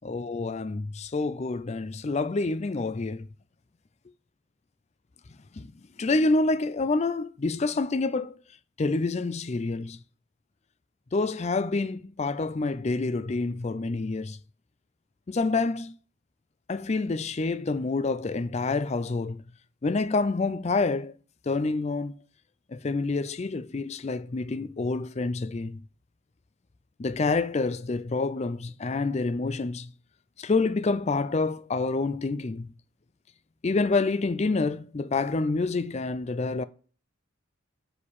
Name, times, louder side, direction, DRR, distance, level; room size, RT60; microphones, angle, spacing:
voice 1, 0.0-3.3 5.6-5.7 6.0-8.3 8.8-10.0 11.1-14.4 15.3-16.0 16.7-19.4 19.8-21.1 21.5-22.1 22.7-25.8 27.0-29.9 30.4-32.7 33.6-36.6, left 3 dB, 30° left, 0.4 m, -27 dB
6.3 x 5.1 x 6.9 m
head